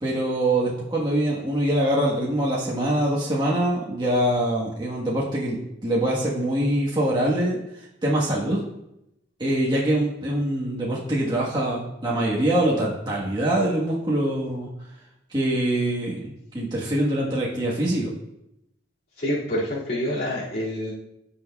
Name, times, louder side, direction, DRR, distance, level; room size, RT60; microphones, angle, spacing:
voice 1, 0.0-7.6 8.0-8.6 9.4-14.7 15.3-18.1, right 1 dB, 25° right, -6 dB, 1.3 m, -24 dB
voice 2, 19.2-20.9, equal, 55° left, -9 dB, 2.4 m, -27 dB
16.0 x 5.8 x 2.3 m, 0.85 s
head